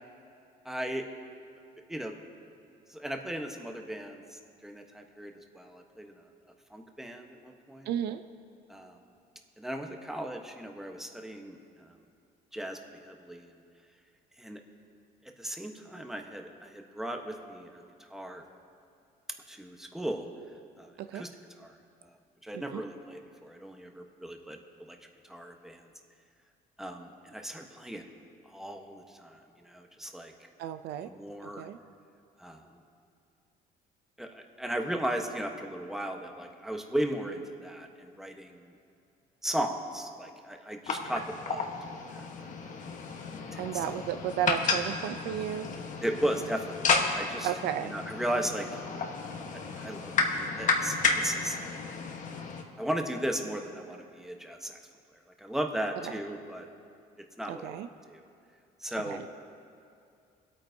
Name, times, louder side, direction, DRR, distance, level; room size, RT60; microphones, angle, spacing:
voice 1, 0.6-1.0 1.9-2.1 2.9-4.2 4.6-6.2 6.7-7.9 8.7-9.0 9.6-11.6 12.5-12.8 13.1-13.5 14.4-14.6 15.4-17.8 18.1-18.4 19.5-20.3 20.8-21.3 21.6-21.8 22.4-24.6 24.9-25.0 25.2-25.8 26.8-28.0 28.5-30.3 31.0-31.7 32.4-32.8 34.2-38.6 39.4-41.7 42.1-42.3 42.6-43.0 43.5-43.8 46.0-47.5 47.8-48.8 49.5-51.6 52.8-54.8 55.4-56.7 57.4-57.8 58.1-58.2 58.8-59.2, right 1 dB, ahead, 3 dB, 1.0 m, -36 dB
voice 2, 7.9-8.2 21.0-21.2 22.5-22.8 30.6-31.1 31.6-31.8 43.6-45.7 47.4-48.0 56.0-56.1 57.5-57.9 59.1-59.3, right 10 dB, 75° right, 10 dB, 0.5 m, -33 dB
sound 1, 40.9-52.6, left 4 dB, 50° left, 1.1 m, -32 dB
25.5 x 8.8 x 2.7 m, 2.5 s
cardioid pair, 110°, 17 cm